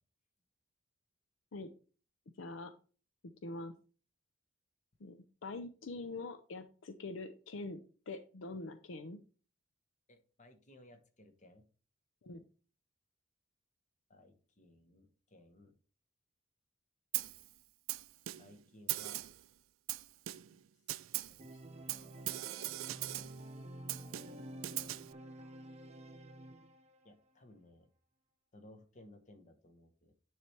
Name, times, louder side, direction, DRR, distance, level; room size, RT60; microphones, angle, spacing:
voice 1, 2.4-2.7 3.4-3.7 5.0-9.2 12.2-12.4, left 2 dB, 70° left, 9 dB, 0.6 m, -44 dB
voice 2, 10.1-11.6 14.1-15.8 18.4-19.2 20.5-20.6 21.3-22.3 27.0-27.9 28.5-30.1, left 1 dB, 40° left, 6 dB, 1.1 m, -60 dB
Snare drum, 17.1-17.5 17.9-18.6 18.9-19.4 19.9-20.6 20.9-21.4 21.9-23.4 23.9-25.1, right 16 dB, 85° right, 0.4 m, -40 dB
Organ, 21.4-27.1, right 1 dB, 35° right, 0.6 m, -50 dB
9.6 x 3.2 x 4.4 m, 0.37 s
head